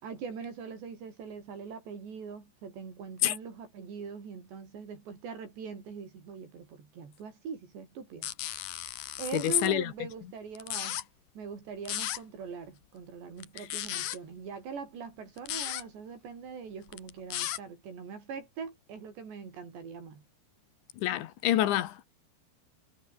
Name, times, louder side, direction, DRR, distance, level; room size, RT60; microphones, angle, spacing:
voice 1, 0.0-8.3 9.2-11.1 11.4-20.2, right 6 dB, 75° right, 7.6 m, -42 dB
sound 1, 8.2-9.7 10.5-11.0 11.8-12.2 13.4-14.2 15.4-15.8 16.9-17.6, left 13 dB, 65° left, 2.1 m, -35 dB
voice 2, 9.3-9.9 13.6-13.7 21.0-22.1, left 13 dB, 90° left, 4.0 m, -27 dB
omnidirectional pair, 5.1 m